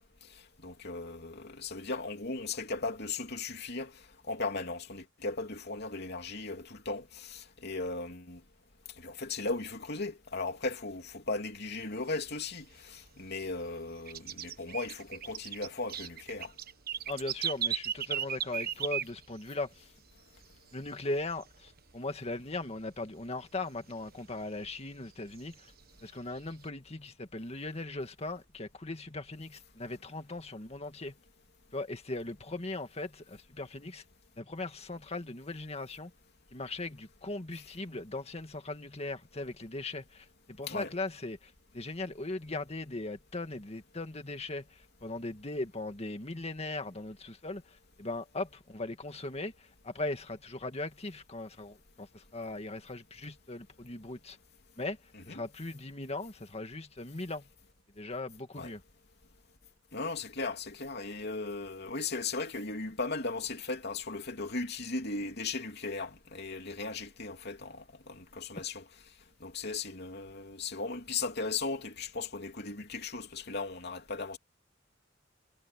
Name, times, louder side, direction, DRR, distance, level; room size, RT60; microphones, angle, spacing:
voice 1, 0.0-8.4 9.0-16.5 40.7-40.9 55.1-55.4 58.6-58.7 59.9-68.8 69.4-74.4, left 3 dB, 60° left, 3.1 m, -37 dB
sound 1, 11.8-13.3 13.6-19.7 20.0-20.1 20.4-20.9 21.2-22.4 22.7-22.8 23.2-23.3 23.7-24.9 25.4-26.7, right 9 dB, 50° right, 1.4 m, -37 dB
voice 2, 17.1-19.9 20.7-25.7 26.0-31.1 31.7-34.0 34.4-36.1 36.5-54.4 54.8-55.0 55.3-57.5 58.0-58.8, left 2 dB, 35° left, 2.0 m, -39 dB
head